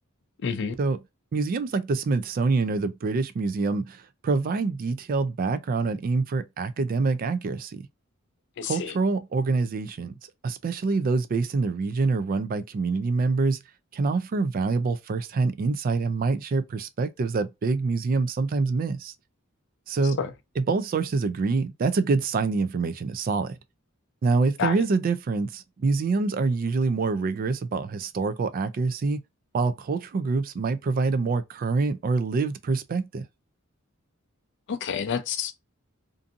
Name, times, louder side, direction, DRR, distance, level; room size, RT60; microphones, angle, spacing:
voice 1, 0.4-0.7 8.6-9.0 20.2-20.3 24.6-24.8 34.7-35.5, left 6 dB, 55° left, 0.4 m, -29 dB
voice 2, 1.3-7.8 8.6-10.2 10.4-13.6 13.9-19.1 19.9-20.2 20.6-23.6 24.2-29.2 29.5-33.3, right 4 dB, 40° right, 0.3 m, -26 dB
2.6 x 2.6 x 2.4 m
head